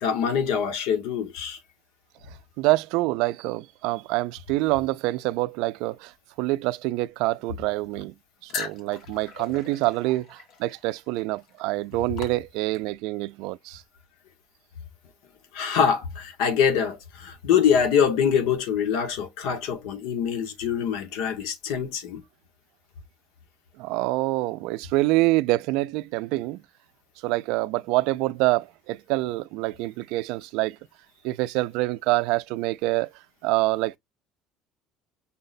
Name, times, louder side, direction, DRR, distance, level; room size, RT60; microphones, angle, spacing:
voice 1, 0.0-1.6 15.5-22.2, left 7 dB, 90° left, 1.1 m, -24 dB
voice 2, 2.6-6.1 6.4-8.1 8.4-13.8 23.8-26.6 27.2-30.8 31.2-33.1 33.4-34.0, right 19 dB, 75° right, 0.3 m, -26 dB
sound 1, 8.5-13.0, left 5 dB, 55° left, 1.1 m, -39 dB
5.6 x 2.2 x 4.0 m
cardioid pair, 175°, 0 cm